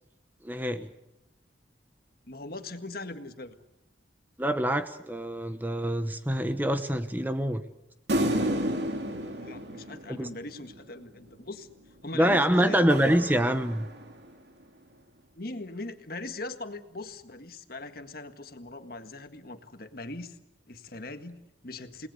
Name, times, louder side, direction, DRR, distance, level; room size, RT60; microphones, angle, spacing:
voice 1, 0.4-0.9 4.4-7.6 10.1-10.3 12.1-13.9, right 1 dB, 10° right, 9 dB, 1.0 m, -25 dB
voice 2, 2.3-3.6 9.3-11.7 12.0-13.1 15.3-20.4 20.7-22.1, left 2 dB, 50° left, 8 dB, 1.7 m, -40 dB
sound 1, 8.1-10.8 12.2-14.3, right 1 dB, 65° right, 2.8 m, -32 dB
30.0 x 19.0 x 8.3 m, 0.89 s
head